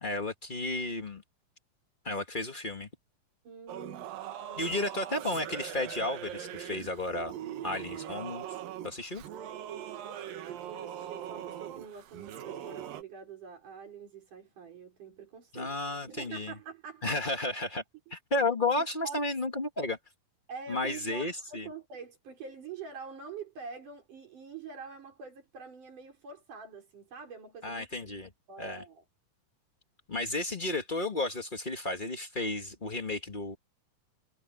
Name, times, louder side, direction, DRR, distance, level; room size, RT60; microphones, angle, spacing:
voice 1, 0.0-1.2 2.0-2.9 4.6-7.3 7.6-8.5 8.8-9.2 15.5-16.5 17.0-17.8 18.1-20.0 20.7-21.7 27.6-28.3 28.6-28.8 30.1-33.5, left 2 dB, 75° left, 0.4 m, -33 dB
voice 2, 3.4-4.2 4.5-4.8 10.4-15.8 16.0-17.2 18.1-18.2 18.5-19.2 20.5-27.9 28.5-29.0, right 5 dB, 60° right, 6.3 m, -45 dB
Singing / Musical instrument, 3.7-13.0, right 10 dB, 80° right, 3.2 m, -41 dB
omnidirectional pair, 4.0 m